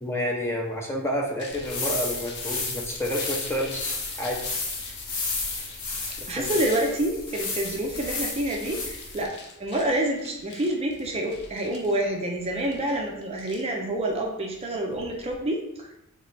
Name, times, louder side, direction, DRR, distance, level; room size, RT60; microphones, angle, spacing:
voice 1, 0.0-4.4 6.3-6.5, equal, 10° left, -1 dB, 0.6 m, -29 dB
sound 1, 1.4-15.4, left 4 dB, 50° left, 0.6 m, -45 dB
sound 2, 1.5-9.3, left 3 dB, 85° left, 1.0 m, -32 dB
voice 2, 6.3-9.3 9.6-15.9, right 1 dB, 30° right, 0 dB, 0.5 m, -28 dB
3.6 x 3.2 x 4.0 m, 0.83 s
head